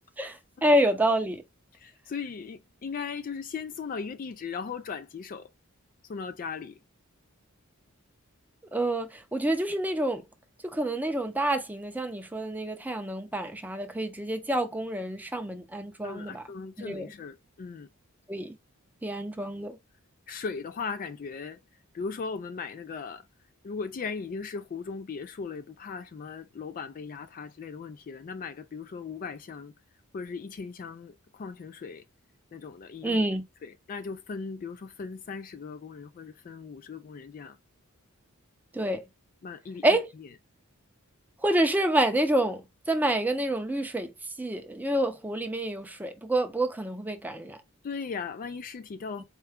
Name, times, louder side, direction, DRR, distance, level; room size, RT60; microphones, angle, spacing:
voice 1, 0.2-1.4 8.7-10.2 10.6-16.4 16.8-17.1 18.3-18.6 19.0-19.8 33.0-33.5 38.7-39.0 39.8-40.1 41.4-44.1 44.4-47.6 49.2-49.3, right 1 dB, 10° right, 0.6 m, -28 dB
voice 2, 1.7-5.5 6.0-6.8 16.0-17.9 20.3-21.6 21.9-23.3 23.6-29.7 30.1-32.0 32.5-33.2 33.6-37.6 39.4-40.0 47.8-49.2, left 5 dB, 40° left, 0.3 m, -38 dB
4.5 x 2.2 x 3.5 m
head